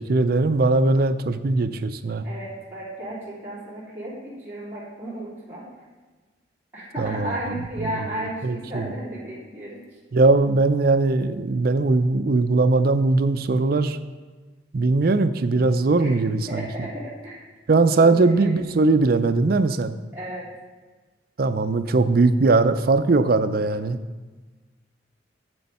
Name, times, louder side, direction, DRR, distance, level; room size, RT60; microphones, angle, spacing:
voice 1, 0.0-2.2 7.0-7.4 8.2-8.8 10.1-14.0 14.7-16.6 17.7-20.0 21.4-24.0, right 3 dB, 55° right, 11 dB, 0.4 m, -20 dB
voice 2, 2.2-5.7 6.7-9.8 16.0-16.1 16.5-17.5 17.8-18.5 20.1-20.5, right 1 dB, 10° right, -10 dB, 2.9 m, -34 dB
7.9 x 7.8 x 4.2 m, 1.3 s
head